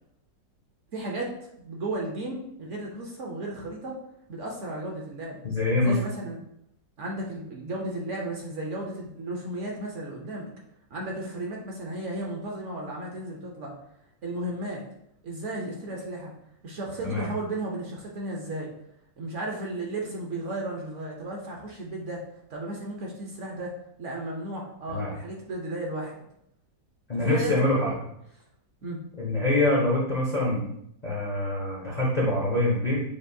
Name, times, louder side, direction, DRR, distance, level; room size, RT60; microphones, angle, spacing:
voice 1, 0.9-1.3 1.6-4.0 4.3-5.4 5.8-6.4 7.0-10.5 10.9-13.7 14.2-14.8 15.2-16.3 16.6-18.7 19.2-22.2 22.5-26.2 27.2-28.0 28.8-29.0, right 1 dB, 55° right, -1 dB, 0.9 m, -34 dB
voice 2, 5.4-6.0 17.0-17.3 24.9-25.1 27.1-27.9 29.2-30.7 31.0-33.0, left 2 dB, 45° left, -4 dB, 0.5 m, -25 dB
6.9 x 2.4 x 2.6 m, 0.73 s
omnidirectional pair, 1.8 m